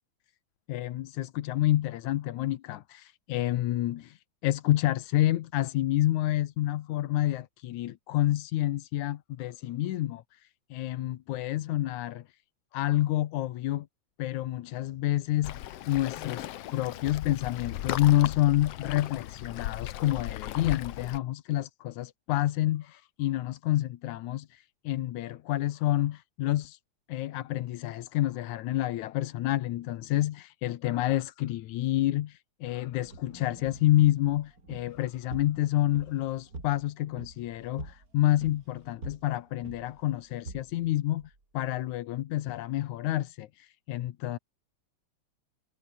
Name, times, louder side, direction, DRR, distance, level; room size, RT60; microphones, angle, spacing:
voice 1, 0.7-12.2 12.7-13.9 14.2-26.8 27.1-44.4, left 14 dB, 90° left, 2.4 m, -28 dB
Waves surf, 15.4-21.2, left 13 dB, 65° left, 1.8 m, -37 dB
sound 1, 33.0-41.7, right 3 dB, 30° right, 4.7 m, -47 dB
omnidirectional pair, 3.3 m